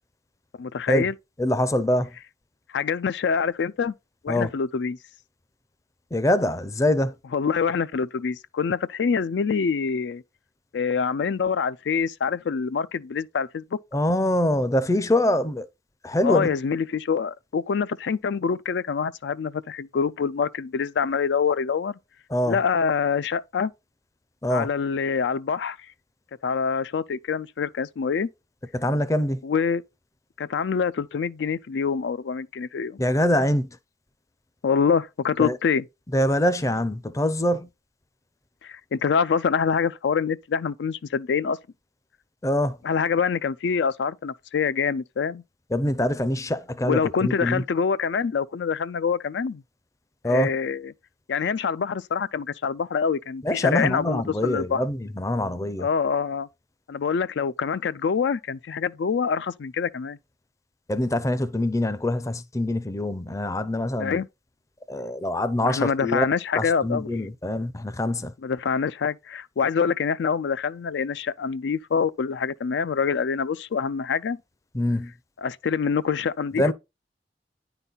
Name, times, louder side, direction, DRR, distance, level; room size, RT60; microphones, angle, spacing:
voice 1, 0.6-1.1 2.7-3.9 4.2-5.0 7.3-10.2 10.7-13.8 16.2-22.0 22.5-23.7 24.5-25.8 26.4-28.3 29.4-29.8 30.4-33.0 34.6-35.8 38.6-41.6 42.8-45.4 46.8-49.6 50.2-50.9 51.3-54.8 55.8-56.5 56.9-60.2 64.0-64.3 65.6-67.1 68.4-74.4 75.4-76.7, left 6 dB, 75° left, 0.4 m, -25 dB
voice 2, 1.4-2.1 4.3-4.5 6.1-7.2 13.9-15.7 16.0-16.5 22.3-22.6 24.4-24.7 28.7-29.4 33.0-33.7 35.4-35.6 36.1-37.7 42.4-42.8 45.7-47.6 50.2-50.5 53.4-55.9 60.9-64.2 64.9-66.3 66.5-68.3 74.7-75.1 76.6-76.7, left 1 dB, 20° left, 0.5 m, -24 dB
9.8 x 4.0 x 3.9 m
head